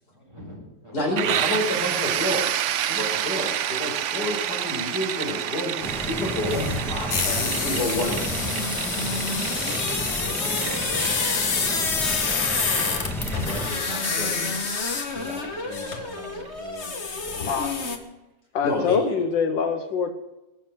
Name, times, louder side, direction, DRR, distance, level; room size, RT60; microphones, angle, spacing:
voice 1, 0.0-1.1 9.6-12.9 13.8-13.9 15.1-17.7, equal, 15° right, -1 dB, 4.3 m, -42 dB
voice 2, 0.9-2.5 2.9-8.2 13.5-14.5 18.6-19.1, left 1 dB, 65° left, -1 dB, 5.3 m, -29 dB
sound 1, 1.2-16.7, right 11 dB, 80° right, 0.6 m, -30 dB
sound 2, 5.8-13.7, equal, ahead, 1.2 m, -33 dB
sound 3, 6.5-18.0, left 4 dB, 40° left, 1.4 m, -27 dB
voice 3, 17.5-17.8 18.5-20.1, left 6 dB, 85° left, 7 dB, 1.7 m, -24 dB
20.5 x 7.2 x 7.7 m, 1.0 s
omnidirectional pair, 1.9 m